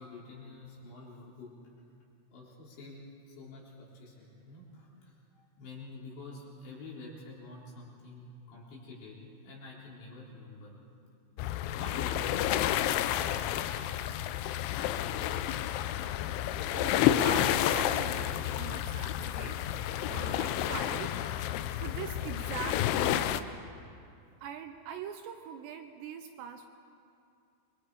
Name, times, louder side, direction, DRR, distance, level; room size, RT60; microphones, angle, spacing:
voice 1, 0.0-1.8 2.3-10.7 11.7-12.5 12.9-14.1 16.7-16.8, left 2 dB, 65° left, -5 dB, 6.3 m, -48 dB
sound 1, 11.4-23.4, left 11 dB, 80° left, 3.0 m, -30 dB
voice 2, 13.7-14.2 16.7-19.6 20.1-23.6 24.4-26.7, right 8 dB, 80° right, 6 dB, 2.7 m, -43 dB
28.5 x 22.5 x 4.9 m, 2.5 s
omnidirectional pair, 5.5 m